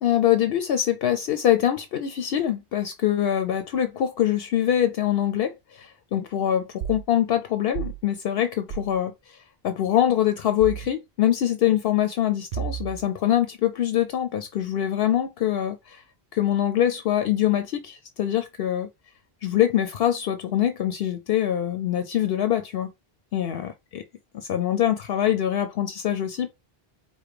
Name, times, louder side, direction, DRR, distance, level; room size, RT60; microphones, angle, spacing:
voice 1, 0.0-16.0 16.3-18.9 19.4-22.9 23.3-23.6 23.9-24.0 24.3-26.5, left 11 dB, 70° left, 0.8 m, -24 dB
sound 1, 6.8-7.1 7.7-8.0 8.7-9.0 10.6-10.9 12.5-13.0, right 10 dB, 65° right, 0.8 m, -32 dB
5.0 x 2.2 x 4.8 m
omnidirectional pair, 1.0 m